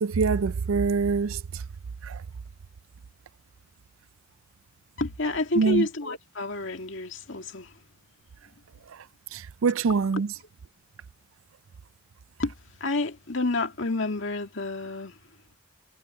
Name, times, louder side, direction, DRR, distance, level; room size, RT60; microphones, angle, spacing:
voice 1, 0.0-1.6 2.0-2.2 5.6-5.9 9.3-10.3, right 5 dB, 80° right, 0.4 m, -25 dB
voice 2, 5.0-7.7 12.4-12.5 12.8-15.2, left 2 dB, 65° left, 2.2 m, -29 dB
head